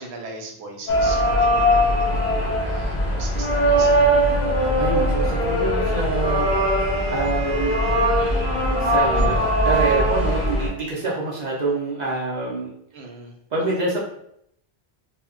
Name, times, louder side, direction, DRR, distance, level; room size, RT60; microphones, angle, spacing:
voice 1, 0.0-4.0 12.9-13.3, right 3 dB, 90° right, 1 dB, 0.9 m, -39 dB
sound 1, 0.9-10.7, equal, 50° left, 0.7 m, -20 dB
voice 2, 4.6-7.8 8.8-12.7 13.5-14.0, right 2 dB, 50° right, -5 dB, 0.6 m, -26 dB
Wind instrument woodwind instrument, 5.3-8.5, right 2 dB, 15° left, 0.5 m, -35 dB
2.1 x 2.1 x 3.6 m, 0.73 s
omnidirectional pair, 1.1 m